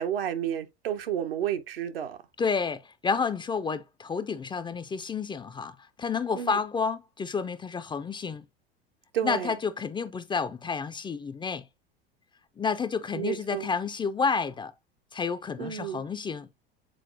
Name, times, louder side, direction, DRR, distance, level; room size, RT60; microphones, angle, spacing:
voice 1, 0.0-2.2 6.3-6.6 9.1-9.5 13.1-13.7 15.6-16.0, right 10 dB, 70° right, 1.0 m, -31 dB
voice 2, 2.4-8.4 9.2-11.6 12.6-14.7 15.1-16.5, left 5 dB, 15° left, 0.5 m, -30 dB
7.8 x 4.3 x 2.8 m
figure-of-eight pair, 75°, 31 cm